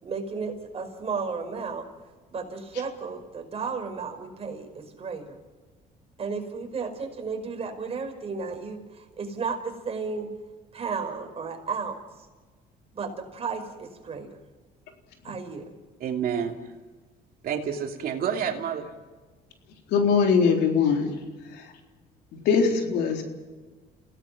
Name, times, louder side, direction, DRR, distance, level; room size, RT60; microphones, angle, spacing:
voice 1, 0.0-1.9 2.3-5.4 6.2-10.3 10.7-12.0 12.9-14.3 15.2-15.7, right 5 dB, 35° right, 4 dB, 5.0 m, -33 dB
voice 2, 16.0-16.7 17.4-18.9, right 7 dB, 60° right, 3 dB, 2.8 m, -29 dB
voice 3, 19.9-21.2 21.5-21.7 22.3-23.2, left 5 dB, 80° left, 3 dB, 3.9 m, -22 dB
29.5 x 17.5 x 6.0 m, 1.3 s
cardioid pair, 110°, 17 cm